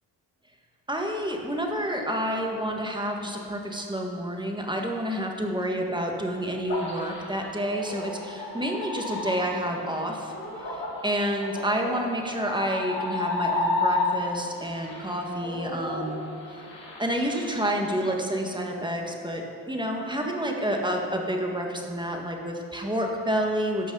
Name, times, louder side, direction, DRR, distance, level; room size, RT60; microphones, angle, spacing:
voice 1, 0.9-10.3 10.7-16.2 16.5-16.6 17.0-23.9, equal, 10° right, 1 dB, 1.7 m, -29 dB
sound 1, 6.7-14.4 14.8-17.7, left 3 dB, 80° left, 2.3 m, -32 dB
11.5 x 6.1 x 5.5 m, 2.7 s
supercardioid pair, 50°, 43 cm